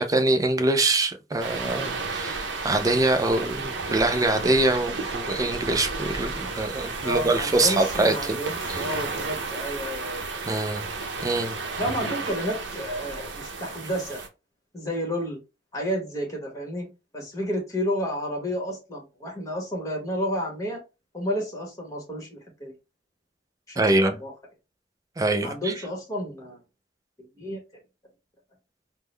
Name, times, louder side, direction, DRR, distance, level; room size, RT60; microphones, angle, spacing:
voice 1, 0.0-8.4 8.7-8.9 10.5-10.9 11.2-11.6 23.8-24.2 25.2-25.7, right 2 dB, 20° right, 0.4 m, -24 dB
sound 1, 1.4-14.3, right 3 dB, 75° right, 0.6 m, -33 dB
voice 2, 7.0-10.2 11.8-14.2 14.7-15.4 15.7-16.9 17.1-20.8 21.1-22.7 23.7-24.3 25.4-26.6 27.4-27.6, equal, 20° left, 1.3 m, -31 dB
3.6 x 2.1 x 3.1 m
head